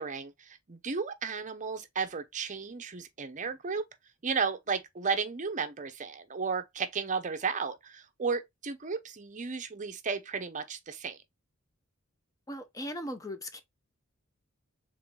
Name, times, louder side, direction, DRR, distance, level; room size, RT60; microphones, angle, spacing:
voice 1, 0.0-3.8 4.2-11.2, right 5 dB, 35° right, 0.6 m, -34 dB
voice 2, 12.5-13.6, equal, 15° left, 0.6 m, -38 dB
3.7 x 3.7 x 3.1 m
head